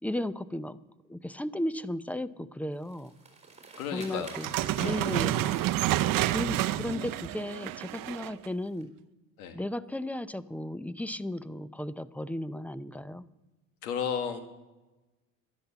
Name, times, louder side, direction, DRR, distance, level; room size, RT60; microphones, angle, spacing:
voice 1, 0.0-0.8 1.1-3.1 3.9-5.7 6.3-8.9 9.5-13.2, left 1 dB, 5° left, 16 dB, 0.6 m, -35 dB
sound 1, 2.7-8.8, right 3 dB, 15° right, 3.9 m, -52 dB
voice 2, 3.8-4.4 4.8-5.1 9.4-9.6 13.8-14.4, left 7 dB, 90° left, 7 dB, 1.8 m, -33 dB
sound 2, 4.3-8.5, right 15 dB, 50° right, 0.7 m, -29 dB
12.0 x 11.5 x 6.9 m, 1.1 s
supercardioid pair, 80°, 42 cm